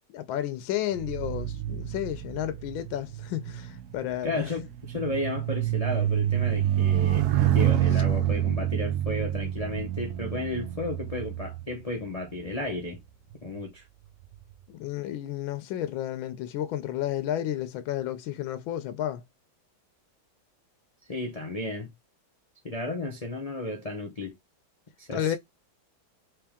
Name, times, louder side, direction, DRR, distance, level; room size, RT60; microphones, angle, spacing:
voice 1, 0.1-4.5 14.7-19.2 25.1-25.4, left 11 dB, 90° left, 1.4 m, -32 dB
sound 1, 0.9-12.6 13.3-13.6, right 12 dB, 70° right, 1.0 m, -28 dB
voice 2, 4.2-13.0 13.4-13.8 21.1-21.9 22.6-24.4 25.0-25.4, left 2 dB, 75° left, 0.3 m, -33 dB
3.5 x 3.3 x 3.5 m
omnidirectional pair, 2.1 m